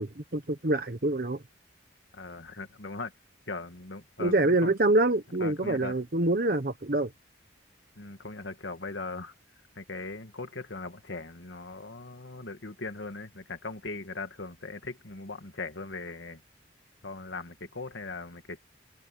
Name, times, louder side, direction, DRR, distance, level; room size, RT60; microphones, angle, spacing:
voice 1, 0.0-1.4 4.2-7.1, right 2 dB, 50° right, 1.1 m, -26 dB
voice 2, 2.1-3.1 3.5-4.7 5.4-6.0 8.0-9.3 9.8-16.4 17.0-18.6, left 3 dB, 85° left, 2.1 m, -39 dB
head